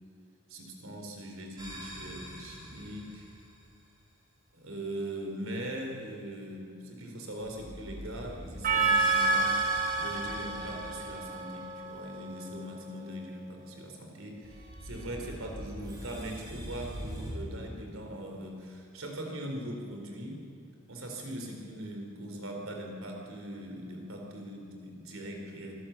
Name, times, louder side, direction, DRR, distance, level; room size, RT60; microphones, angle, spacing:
voice 1, 0.5-3.3 4.5-9.6 10.0-20.4 20.9-25.7, right 1 dB, 70° right, 1 dB, 4.2 m, -41 dB
sound 1, 1.6-3.5 7.4-11.9 14.4-17.3, left 1 dB, 20° right, 4.6 m, -36 dB
Percussion, 8.6-13.2, right 7 dB, 40° right, 1.6 m, -32 dB
25.5 x 12.5 x 8.5 m, 2.5 s
head